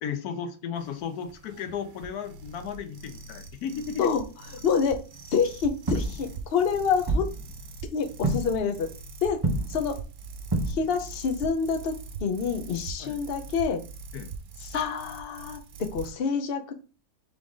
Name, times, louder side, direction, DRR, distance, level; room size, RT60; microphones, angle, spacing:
voice 1, 0.0-4.1 13.0-13.2 14.1-14.3, left 7 dB, 90° left, 8 dB, 1.2 m, -35 dB
sound 1, 0.7-16.1, right 4 dB, 75° right, 1.1 m, -42 dB
voice 2, 4.6-5.0 5.3-7.3 7.9-8.9 9.2-9.4 9.7-10.0 10.7-11.9 12.2-13.8 14.6-16.7, left 6 dB, 50° left, 5 dB, 0.8 m, -27 dB
sound 2, 5.9-6.6 7.1-7.8 8.2-8.7 9.3-10.0 10.5-11.1 12.3-12.4 14.5-14.6, right 2 dB, 30° right, 0.4 m, -29 dB
3.8 x 3.6 x 3.8 m, 0.34 s
omnidirectional pair, 1.6 m